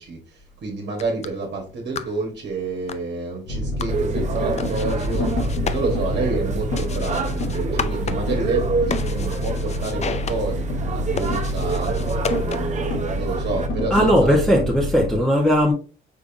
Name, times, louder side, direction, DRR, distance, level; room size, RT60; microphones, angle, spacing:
voice 1, 0.0-11.9 12.3-14.4, right 3 dB, 60° right, 1.2 m, -29 dB
sound 1, 0.8-12.9, left 6 dB, 35° left, 0.5 m, -35 dB
sound 2, 3.5-15.2, left 1 dB, 75° left, 1.9 m, -27 dB
sound 3, 3.9-13.7, right 4 dB, 35° right, 0.8 m, -29 dB
voice 2, 13.9-15.7, equal, ahead, 0.9 m, -18 dB
5.3 x 3.4 x 2.5 m
cardioid pair, 90°, 20 cm